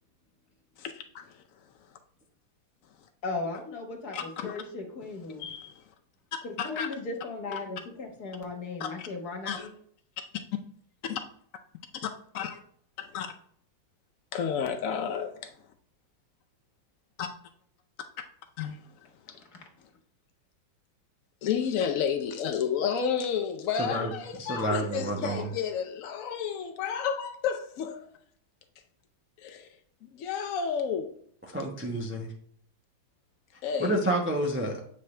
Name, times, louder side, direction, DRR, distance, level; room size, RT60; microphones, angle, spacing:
voice 1, 0.8-1.4 4.1-4.6 5.4-5.8 6.6-6.9 8.8-9.1 9.5-9.7 11.0-11.2 12.0-12.6 13.0-13.3 14.3-15.5 17.2-17.3 18.6-18.8 19.3-19.4 21.4-28.0 29.4-29.7 30.1-31.1 33.6-34.0, left 7 dB, 90° left, 0.7 m, -31 dB
voice 2, 3.2-5.5 6.4-9.7 19.5-19.6, left 3 dB, 55° left, 1.8 m, -37 dB
voice 3, 23.8-24.1 24.4-25.5 31.5-32.3 33.8-34.8, right 1 dB, 15° right, 0.5 m, -29 dB
8.4 x 5.6 x 3.3 m
omnidirectional pair, 2.1 m